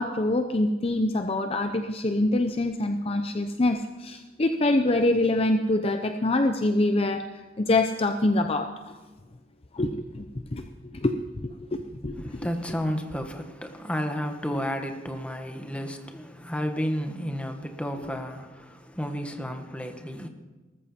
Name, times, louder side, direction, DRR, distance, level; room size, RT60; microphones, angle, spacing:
voice 1, 0.0-7.2 7.6-9.0 9.7-10.3 10.5-12.5, left 2 dB, 30° left, 0.7 m, -25 dB
voice 2, 12.2-20.3, equal, 5° left, 1.5 m, -32 dB
19.5 x 14.0 x 4.4 m
head